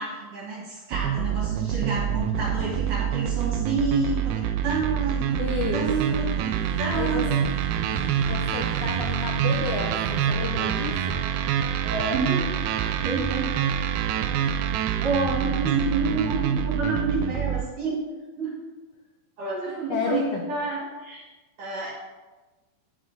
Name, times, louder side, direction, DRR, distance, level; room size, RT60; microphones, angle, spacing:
voice 1, 0.0-5.5 5.7-6.5 6.8-7.8 11.8-12.5 13.0-13.5 15.0-18.0 18.4-18.6 19.4-21.2 21.6-21.9, right 3 dB, 60° right, -4 dB, 3.0 m, -29 dB
sound 1, 0.9-17.7, right 9 dB, 80° right, 2.3 m, -26 dB
sound 2, 4.7-9.9 10.6-12.0, right 1 dB, 65° left, 3.7 m, -42 dB
voice 2, 5.4-6.3 6.8-7.3 8.1-11.2 19.6-20.4, left 5 dB, 85° left, 1 dB, 1.7 m, -32 dB
10.0 x 8.1 x 3.8 m, 1.2 s
omnidirectional pair, 4.6 m